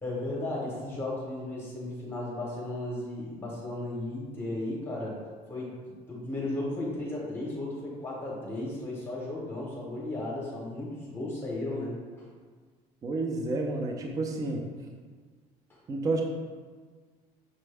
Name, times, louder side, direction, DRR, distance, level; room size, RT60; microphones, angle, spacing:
voice 1, 0.0-5.1 5.5-5.7 6.1-11.9 12.2-12.3, left 2 dB, 15° left, -4 dB, 0.8 m, -35 dB
voice 2, 13.0-14.6 15.9-16.2, right 2 dB, 25° right, 1 dB, 0.4 m, -30 dB
6.1 x 2.2 x 3.3 m, 1.5 s
cardioid pair, 175°, 15 cm